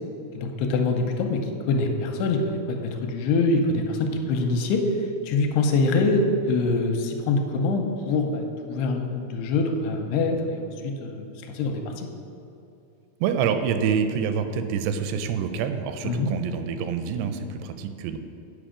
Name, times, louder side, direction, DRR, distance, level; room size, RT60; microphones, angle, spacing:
voice 1, 0.3-4.8 5.2-12.1 16.0-16.3, left 3 dB, 85° left, 3 dB, 2.6 m, -24 dB
voice 2, 13.2-18.2, right 7 dB, 85° right, 8 dB, 2.6 m, -26 dB
8.9 x 5.1 x 4.9 m, 2.6 s
omnidirectional pair, 4.8 m